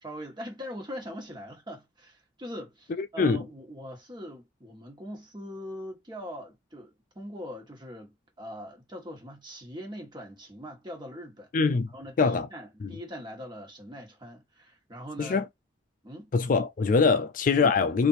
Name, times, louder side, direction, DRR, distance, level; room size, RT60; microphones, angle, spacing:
voice 1, 0.0-11.5 11.9-15.5 16.0-16.3, equal, 25° right, 1.5 m, -42 dB
voice 2, 3.0-3.4 11.5-11.9 12.2-12.5 12.8-12.9 15.2-15.4 16.3-18.1, left 4 dB, 45° left, 0.4 m, -23 dB
3.3 x 2.7 x 4.2 m
head